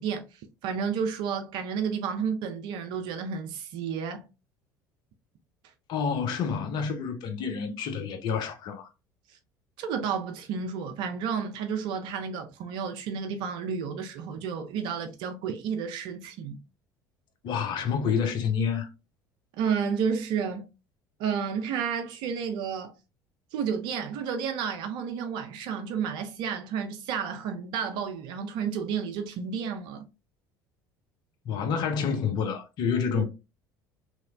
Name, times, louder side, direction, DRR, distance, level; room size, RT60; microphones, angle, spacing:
voice 1, 0.0-4.3 9.3-9.4 9.8-16.6 19.6-20.7 21.2-22.9 23.5-30.0, right 6 dB, 50° right, 0.4 m, -31 dB
voice 2, 5.9-8.9 17.4-18.9 31.5-33.2, left 6 dB, 45° left, 0.6 m, -28 dB
2.9 x 2.0 x 2.3 m
figure-of-eight pair, 60°, 10 cm